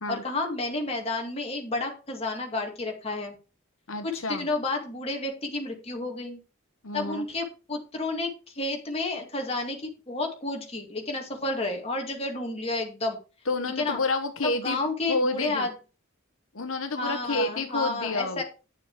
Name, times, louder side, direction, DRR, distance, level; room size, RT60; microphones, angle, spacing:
voice 1, 0.1-3.4 4.0-6.4 6.9-8.3 8.5-13.2 13.8-14.0 14.4-15.7 16.9-18.4, left 2 dB, 30° left, 2 dB, 2.3 m, -31 dB
voice 2, 3.9-4.5 6.8-7.2 13.5-14.8 15.1-15.7 16.5-18.4, left 3 dB, 75° left, 7 dB, 1.1 m, -29 dB
10.0 x 6.9 x 4.9 m, 0.33 s
head